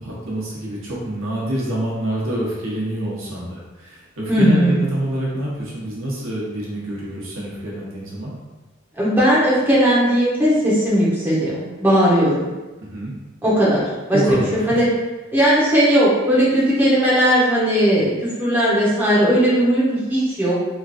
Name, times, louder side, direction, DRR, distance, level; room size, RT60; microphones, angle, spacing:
voice 1, 0.0-8.3 12.8-13.1 14.1-14.8, right 1 dB, 85° right, -5 dB, 1.0 m, -26 dB
voice 2, 4.3-4.7 9.0-12.5 13.4-14.2 14.7-14.9 15.3-20.6, equal, 10° right, -9 dB, 1.0 m, -17 dB
3.6 x 3.1 x 2.5 m, 1.1 s
head